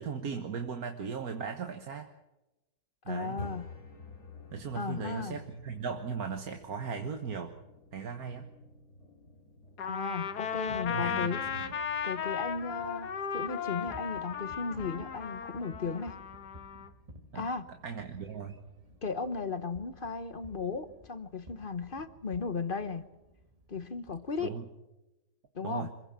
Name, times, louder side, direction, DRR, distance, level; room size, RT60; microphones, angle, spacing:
voice 1, 0.0-2.1 3.0-3.4 4.5-7.5 7.9-8.5 10.9-11.6 17.3-17.5 17.8-18.6 24.4-24.6 25.6-25.9, right 6 dB, 65° right, 5 dB, 1.8 m, -37 dB
voice 2, 3.1-3.7 4.7-5.4 9.9-11.4 12.0-16.2 17.3-17.7 19.0-23.0 23.7-24.5 25.5-25.9, left 4 dB, 35° left, 11 dB, 1.1 m, -36 dB
sound 1, 3.2-23.1, left 3 dB, 60° left, 2.9 m, -53 dB
Trumpet, 9.8-16.9, left 8 dB, 80° left, 1.8 m, -36 dB
sound 2, 10.5-24.6, right 1 dB, 25° right, 1.6 m, -55 dB
26.0 x 16.5 x 7.5 m, 1.0 s
omnidirectional pair, 1.7 m